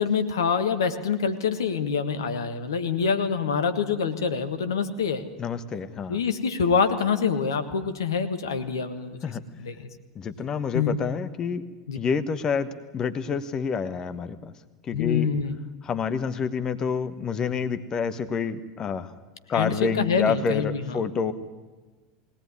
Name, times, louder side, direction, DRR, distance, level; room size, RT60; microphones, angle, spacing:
voice 1, 0.0-5.2 6.1-9.9 10.7-11.0 11.9-12.0 14.9-15.6 19.5-21.0, left 6 dB, 70° left, 9 dB, 1.5 m, -26 dB
voice 2, 5.4-6.2 9.2-9.4 10.1-11.6 11.9-14.5 14.8-15.3 15.8-19.1 19.5-21.3, left 6 dB, 30° left, 11 dB, 1.2 m, -28 dB
21.5 x 18.0 x 9.7 m, 1.2 s
figure-of-eight pair, 80°, 2 cm